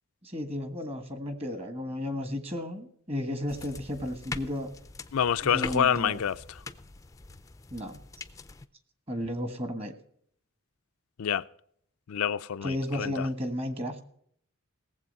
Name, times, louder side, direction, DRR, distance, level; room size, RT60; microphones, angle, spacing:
voice 1, 0.2-4.7 5.4-6.2 7.7-8.0 9.1-9.9 12.6-14.0, left 1 dB, 25° right, 1.4 m, -33 dB
sound 1, 3.5-8.7, left 4 dB, 15° left, 0.4 m, -42 dB
voice 2, 5.1-6.6 11.2-11.4 12.1-13.3, left 8 dB, 75° left, 0.4 m, -27 dB
18.0 x 7.7 x 5.3 m
head